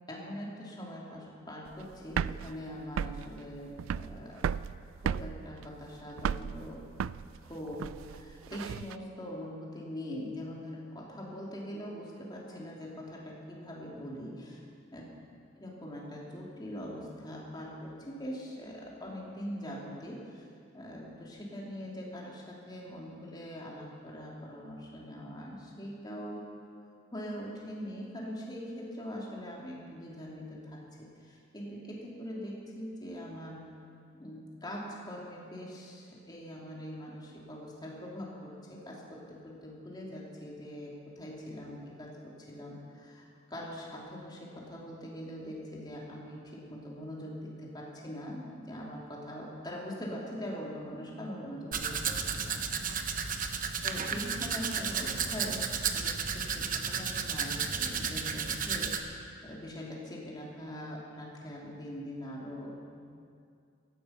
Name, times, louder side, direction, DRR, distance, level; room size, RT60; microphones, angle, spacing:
voice 1, 0.1-4.5 5.0-6.8 7.4-14.6 14.9-15.0 15.6-20.5 20.7-26.4 27.1-33.7 34.2-52.6 53.0-53.2 53.8-59.0 59.4-63.0, equal, 20° left, -3 dB, 2.9 m, -42 dB
sound 1, 1.7-8.9, right 7 dB, 85° right, 0.3 m, -35 dB
Domestic sounds home sounds, 51.7-59.0, right 6 dB, 45° right, 1.0 m, -33 dB
16.5 x 14.0 x 5.8 m, 2.4 s
head